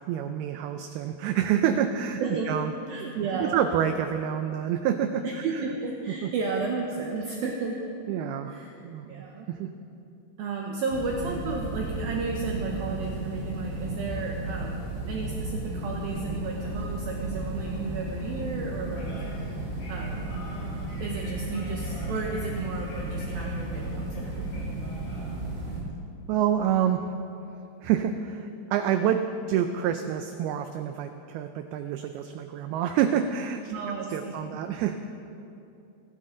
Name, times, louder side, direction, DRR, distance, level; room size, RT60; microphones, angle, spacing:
voice 1, 0.1-2.2 2.5-2.7 3.0-3.1 3.4-5.6 6.2-6.3 8.1-9.7 26.3-27.2 27.8-33.7 34.1-35.0, right 9 dB, 90° right, 8 dB, 2.2 m, -27 dB
voice 2, 2.2-2.5 2.9-3.6 5.2-7.8 8.5-8.7 9.1-9.5 10.4-19.1 19.9-20.3 21.0-24.7 33.7-34.6, right 4 dB, 70° right, 0 dB, 2.4 m, -33 dB
sound 1, 10.9-25.8, right 2 dB, 55° right, 5.1 m, -34 dB
sound 2, 16.4-25.8, left 2 dB, 75° left, 6.0 m, -48 dB
27.5 x 11.5 x 3.8 m, 2.7 s
omnidirectional pair, 5.1 m